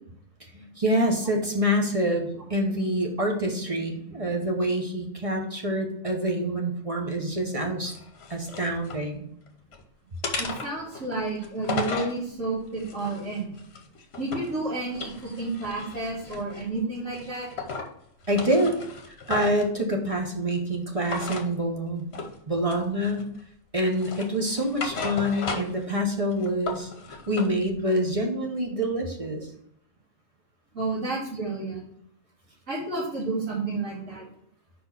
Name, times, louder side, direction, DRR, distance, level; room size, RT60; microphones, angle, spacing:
voice 1, 0.5-7.9 8.3-9.3 18.3-18.7 19.3-22.1 22.5-23.3 23.7-26.9 27.3-29.5, equal, 30° right, 2 dB, 0.9 m, -26 dB
sound 1, 7.9-9.0 9.5-9.8 10.2-12.2 12.8-14.6 14.9-16.7 17.1-17.9 18.2-19.7 21.0-21.5 22.1-22.4 22.7-23.4 23.9-25.9 26.2-27.5, left 4 dB, 55° left, 1.1 m, -35 dB
voice 2, 10.4-13.6 14.2-17.5 30.7-31.8 32.7-34.2, right 3 dB, 75° right, -9 dB, 2.6 m, -31 dB
5.1 x 4.3 x 5.7 m, 0.72 s
omnidirectional pair, 1.3 m